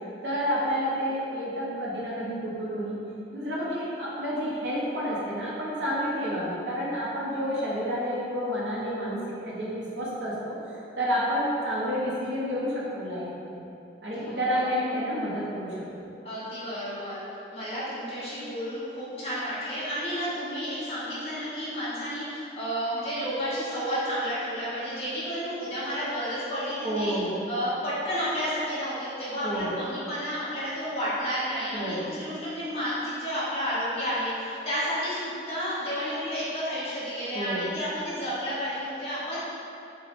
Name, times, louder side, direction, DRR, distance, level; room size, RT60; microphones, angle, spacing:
voice 1, 0.2-3.0 3.3-9.2 9.4-10.5 11.0-13.6 14.0-15.8 26.8-27.4 29.4-29.8 31.7-32.1 37.3-37.7, equal, 75° right, -6 dB, 0.9 m, -29 dB
voice 2, 14.2-14.6 16.2-17.2 17.5-27.1 27.5-39.4, equal, 35° left, -10 dB, 1.1 m, -31 dB
6.1 x 2.4 x 2.5 m, 2.8 s
head